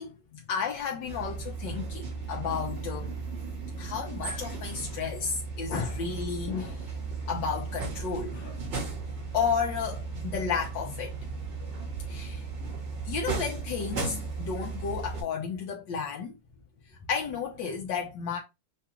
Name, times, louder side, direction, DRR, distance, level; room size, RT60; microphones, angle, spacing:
voice 1, 0.0-3.1 3.8-6.9 7.3-8.6 9.3-11.1 12.1-12.4 13.0-16.3 17.1-18.4, left 6 dB, 80° left, 1.6 m, -32 dB
sound 1, 1.1-15.2, right 4 dB, 85° right, 2.3 m, -36 dB
7.0 x 2.4 x 2.9 m
omnidirectional pair, 2.0 m